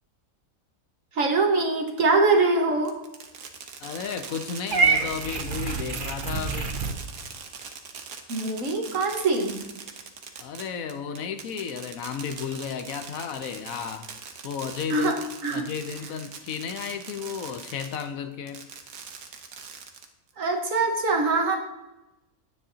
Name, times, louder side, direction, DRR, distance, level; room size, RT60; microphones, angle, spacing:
voice 1, 1.1-3.0 8.3-9.7 14.9-15.7 20.4-21.6, right 3 dB, 65° right, 2 dB, 1.6 m, -23 dB
Fireworks, 2.9-18.1 18.5-20.3, right 6 dB, 80° right, 1.4 m, -41 dB
voice 2, 3.8-6.8 10.4-14.1 14.4-15.1 15.5-18.6, left 7 dB, 75° left, 9 dB, 1.1 m, -33 dB
Purr / Meow, 4.7-6.9, right 4 dB, 45° right, 0.7 m, -26 dB
10.0 x 8.6 x 2.7 m, 0.96 s
omnidirectional pair, 1.5 m